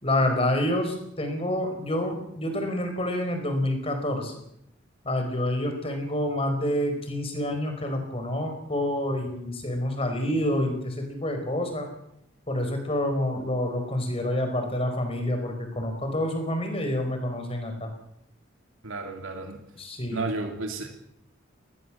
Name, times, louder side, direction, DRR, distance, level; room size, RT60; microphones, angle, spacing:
voice 1, 0.0-4.3 5.0-11.9 12.5-17.9 19.8-20.3, left 1 dB, 30° left, 6 dB, 4.9 m, -28 dB
voice 2, 18.8-19.6 20.1-20.9, right 2 dB, 85° right, 3 dB, 2.7 m, -32 dB
20.5 x 18.5 x 7.5 m, 0.77 s
head